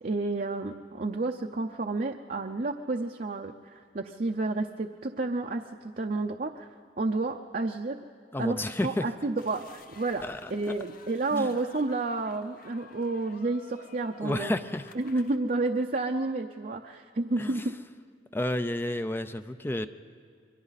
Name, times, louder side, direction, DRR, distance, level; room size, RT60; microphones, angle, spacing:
voice 1, 0.0-8.0 8.4-10.2 10.5-14.5 14.9-17.6, right 2 dB, 45° right, 3 dB, 0.7 m, -31 dB
voice 2, 8.3-9.1 10.2-10.7 11.3-11.5 14.2-14.9 17.4-17.5 18.3-19.9, left 1 dB, 10° left, 10 dB, 0.5 m, -31 dB
sound 1, 9.4-15.4, left 4 dB, 50° left, 0.9 m, -54 dB
28.5 x 23.0 x 4.1 m, 2.2 s
head